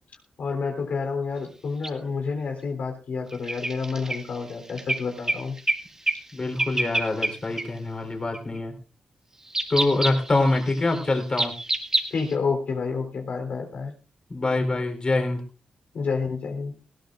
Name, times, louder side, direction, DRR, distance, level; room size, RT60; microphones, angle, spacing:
voice 1, 0.4-5.6 12.1-13.9 15.9-16.7, left 5 dB, 75° left, 3 dB, 3.7 m, -29 dB
sound 1, 1.8-1.9 3.3-5.8 6.1-6.3 6.6-7.3 7.6-7.7 8.3-8.6 9.5-12.3, right 2 dB, 20° right, 1.9 m, -27 dB
voice 2, 6.3-8.7 9.7-11.5 14.3-15.4, left 2 dB, 35° left, 3 dB, 4.0 m, -25 dB
19.5 x 17.5 x 2.6 m, 0.35 s
wide cardioid pair, 105°, 3 cm